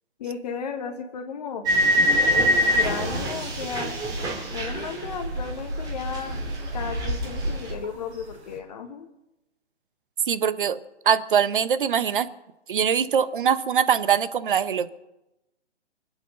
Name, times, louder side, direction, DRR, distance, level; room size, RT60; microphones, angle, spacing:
voice 1, 0.2-1.7 2.3-2.5 2.8-4.0 4.5-6.4 6.7-9.1, left 6 dB, 35° left, 6 dB, 1.3 m, -34 dB
sound 1, 1.7-5.6 5.8-7.7, equal, 10° right, 2.8 m, -25 dB
sound 2, 1.7-8.6, right 1 dB, 70° right, 5.0 m, -34 dB
voice 2, 10.3-10.8 11.0-12.3 12.7-14.9, right 8 dB, 45° right, 13 dB, 1.1 m, -22 dB
25.0 x 8.5 x 6.5 m, 0.92 s
figure-of-eight pair, 135°, 35 cm